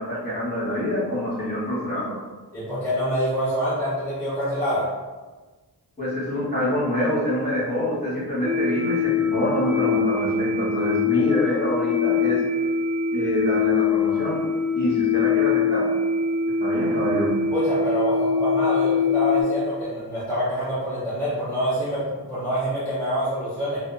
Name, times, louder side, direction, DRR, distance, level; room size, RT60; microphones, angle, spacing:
voice 1, 0.0-2.1 6.0-12.4 13.1-14.4 14.7-15.9 16.6-17.3, equal, 25° left, -9 dB, 1.2 m, -26 dB
voice 2, 2.5-4.8 17.5-23.8, equal, 5° left, -11 dB, 0.8 m, -26 dB
sound 1, 8.4-19.4, left 5 dB, 20° right, 0.4 m, -23 dB
2.7 x 2.1 x 2.5 m, 1.3 s
wide cardioid pair, 120°, 41 cm